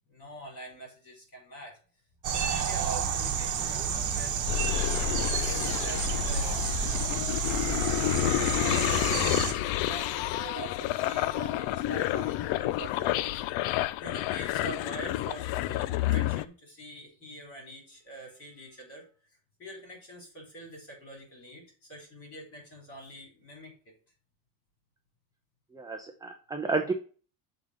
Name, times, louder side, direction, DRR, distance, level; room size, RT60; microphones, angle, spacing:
voice 1, 0.0-1.8 2.3-6.7 7.6-19.0 19.6-23.7, right 1 dB, 30° left, 0 dB, 4.4 m, -45 dB
sound 1, 2.2-9.5, right 7 dB, 40° right, 1.3 m, -30 dB
sound 2, 4.5-16.5, left 15 dB, 70° left, 0.5 m, -29 dB
voice 2, 25.7-26.9, right 4 dB, 10° right, 4 dB, 0.5 m, -31 dB
6.9 x 3.8 x 6.2 m, 0.39 s
cardioid pair, 135°, 47 cm